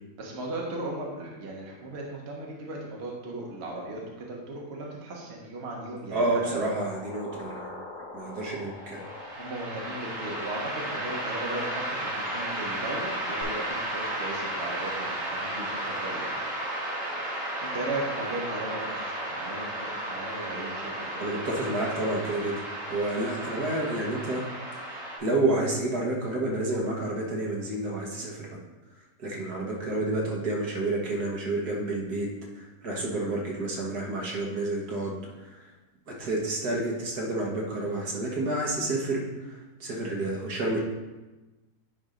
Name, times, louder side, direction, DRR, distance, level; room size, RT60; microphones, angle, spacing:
voice 1, 0.2-6.7 8.5-8.6 9.3-16.3 17.6-21.3 29.4-29.6, right 2 dB, 40° right, -2 dB, 1.3 m, -37 dB
voice 2, 6.1-7.8 8.1-9.0 21.2-22.6 22.9-24.4 24.8-28.6 29.2-32.3 32.5-35.6 36.1-40.8, right 2 dB, 65° right, -2 dB, 1.8 m, -30 dB
sound 1, 6.4-13.4, left 3 dB, 75° left, 2.6 m, -43 dB
sound 2, 8.8-25.2, right 1 dB, 90° right, 2.8 m, -34 dB
9.8 x 3.5 x 5.1 m, 1.1 s
omnidirectional pair, 1.8 m